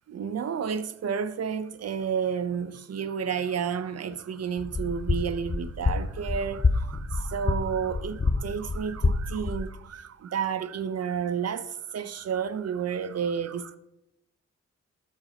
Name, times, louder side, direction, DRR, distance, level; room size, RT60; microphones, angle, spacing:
voice 1, 0.1-13.8, right 7 dB, 60° right, 0.7 m, -31 dB
sound 1, 4.6-9.6, left 3 dB, 25° left, 0.8 m, -28 dB
13.5 x 5.9 x 2.8 m
cardioid pair, 55°, 29 cm